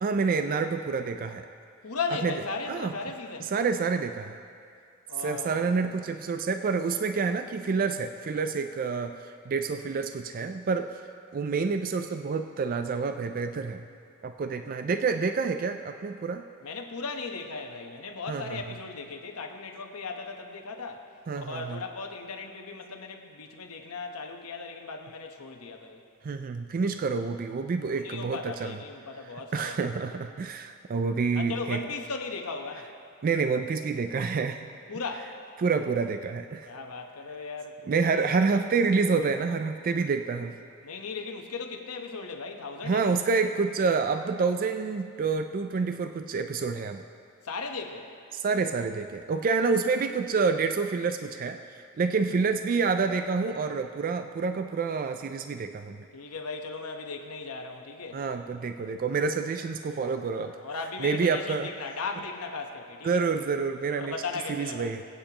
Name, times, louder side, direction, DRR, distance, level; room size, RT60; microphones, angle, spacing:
voice 1, 0.0-1.4 2.2-2.3 2.7-2.9 3.5-4.4 5.2-11.0 11.3-13.8 14.2-16.4 18.3-18.6 21.3-21.8 26.2-28.8 29.5-31.8 33.2-34.6 35.6-36.7 37.9-40.6 42.8-47.0 48.3-56.1 58.1-60.6 61.0-61.7 63.0-64.1 64.5-65.0, right 4 dB, 40° right, 7 dB, 0.3 m, -28 dB
voice 2, 1.8-3.5 5.1-5.7 14.6-14.8 16.6-21.0 21.3-26.0 27.9-29.8 30.3-30.4 31.3-32.9 34.9-35.3 36.6-38.4 40.8-43.1 47.4-48.1 56.1-58.2 59.1-59.2 60.3-63.2 64.0-64.9, left 4 dB, 75° left, 3 dB, 1.0 m, -37 dB
22.0 x 8.8 x 3.0 m, 2.3 s
head